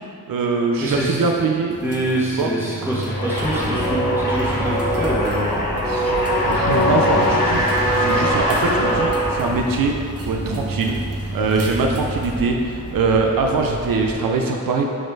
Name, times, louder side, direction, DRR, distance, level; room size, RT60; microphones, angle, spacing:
voice 1, 0.3-1.8 2.4-2.5 5.8-6.1 6.4-9.9 10.3-11.0 11.3-14.8, right 4 dB, 75° right, 2 dB, 0.6 m, -22 dB
voice 2, 0.8-1.3 1.8-5.6 6.0-6.2, right 1 dB, 5° right, -8 dB, 1.5 m, -25 dB
sound 1, 1.7-12.4, right 1 dB, 45° right, 0.9 m, -31 dB
sound 2, 3.1-9.8, equal, 75° left, 1.4 m, -21 dB
sound 3, 3.4-14.1, equal, 25° left, 1.1 m, -34 dB
5.0 x 4.1 x 4.6 m, 2.5 s
wide cardioid pair, 100°, 35 cm